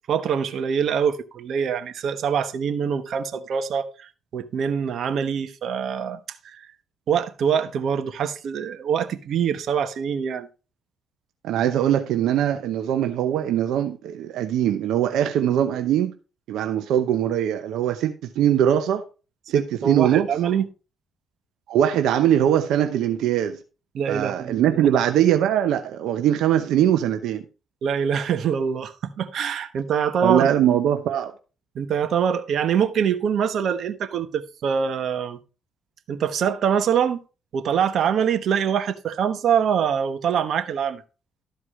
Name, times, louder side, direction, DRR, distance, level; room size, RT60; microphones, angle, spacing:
voice 1, 0.1-6.7 7.1-10.5 19.5-20.7 23.9-24.9 27.8-30.5 31.7-35.4 36.1-37.2 37.5-41.0, right 7 dB, 65° right, 1.1 m, -24 dB
voice 2, 11.4-16.1 16.5-19.0 19.5-20.3 21.7-23.6 24.1-27.4 30.2-31.3, right 10 dB, 85° right, 0.8 m, -21 dB
13.0 x 4.8 x 4.8 m
cardioid pair, 90°, 0 cm